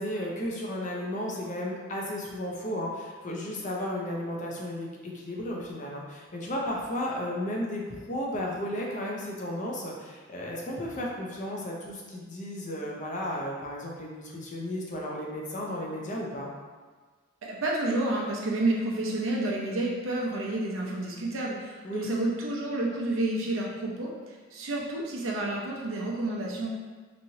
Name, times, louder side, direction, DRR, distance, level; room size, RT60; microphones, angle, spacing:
voice 1, 0.0-16.5 21.8-22.1, left 1 dB, 40° left, -2 dB, 0.5 m, -34 dB
voice 2, 17.4-26.7, right 2 dB, 90° right, -2 dB, 0.6 m, -30 dB
3.0 x 2.7 x 2.7 m, 1.4 s
head